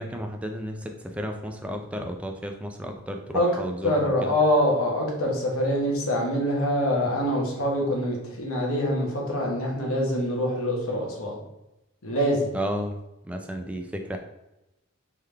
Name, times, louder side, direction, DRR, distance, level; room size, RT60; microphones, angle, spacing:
voice 1, 0.0-4.3 12.5-13.0 13.3-14.2, equal, 5° right, 4 dB, 0.3 m, -33 dB
voice 2, 3.8-11.4 12.0-12.6, equal, 70° left, -1 dB, 1.1 m, -25 dB
3.7 x 3.3 x 3.2 m, 0.94 s
head